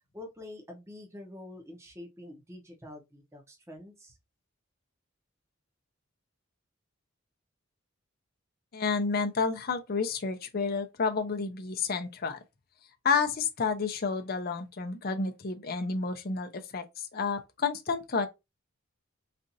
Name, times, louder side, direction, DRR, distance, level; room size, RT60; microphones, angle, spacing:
voice 1, 0.1-4.2, left 1 dB, 15° right, 0.8 m, -46 dB
voice 2, 8.7-12.4 13.0-18.3, left 5 dB, 45° left, 0.6 m, -30 dB
4.1 x 2.5 x 2.6 m
head